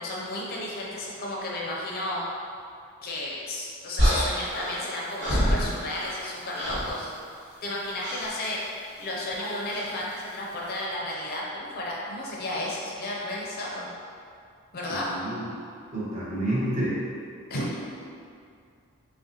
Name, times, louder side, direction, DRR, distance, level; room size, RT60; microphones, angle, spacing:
voice 1, 0.0-2.2 3.0-7.1 7.6-13.9 14.7-15.1 17.5-17.8, left 1 dB, 45° left, -4 dB, 0.5 m, -33 dB
sound 1, 4.0-6.3 6.5-7.0 8.0-8.3 9.7-9.9, equal, 55° right, 1.3 m, -26 dB
voice 2, 14.9-15.5 15.9-17.0, right 1 dB, 30° right, -9 dB, 0.9 m, -29 dB
5.5 x 2.1 x 2.8 m, 2.4 s
head